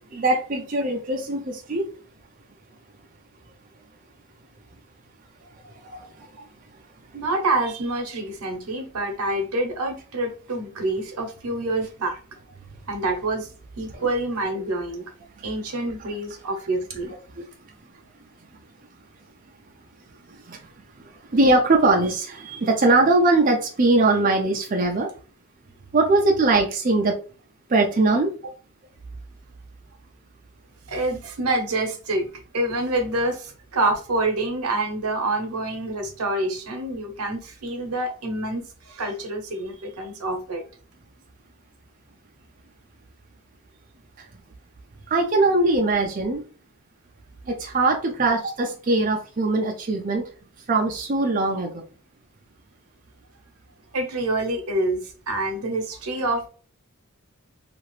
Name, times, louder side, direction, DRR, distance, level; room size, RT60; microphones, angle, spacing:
voice 1, 0.1-1.9 5.8-6.0 17.3-17.4 20.5-20.6 21.3-25.1 25.9-27.2 27.7-28.3 45.1-46.4 47.5-50.2 50.7-51.7, right 2 dB, 35° right, 1 dB, 0.4 m, -21 dB
voice 2, 7.1-12.4 12.9-15.0 15.4-17.1 30.9-32.3 32.5-40.6 53.9-56.5, right 2 dB, 90° right, 4 dB, 0.8 m, -27 dB
2.8 x 2.4 x 3.1 m, 0.39 s
head